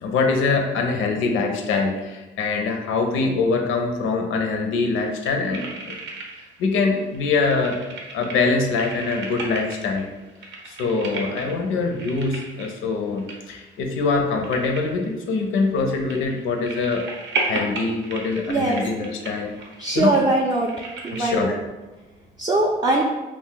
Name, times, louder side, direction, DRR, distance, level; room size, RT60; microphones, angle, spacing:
voice 1, 0.0-6.0 6.6-7.8 8.1-10.1 10.7-17.0 17.4-19.5 19.9-20.2 21.1-21.6, left 4 dB, 85° left, 3 dB, 0.5 m, -23 dB
sound 1, 4.9-6.7 6.9-21.3, right 3 dB, 70° right, 0.6 m, -35 dB
voice 2, 18.5-18.8 19.8-20.7 21.0-21.6 22.4-23.0, right 2 dB, 20° right, -2 dB, 0.3 m, -21 dB
2.4 x 2.0 x 3.8 m, 1.1 s
cardioid pair, 90°, 20 cm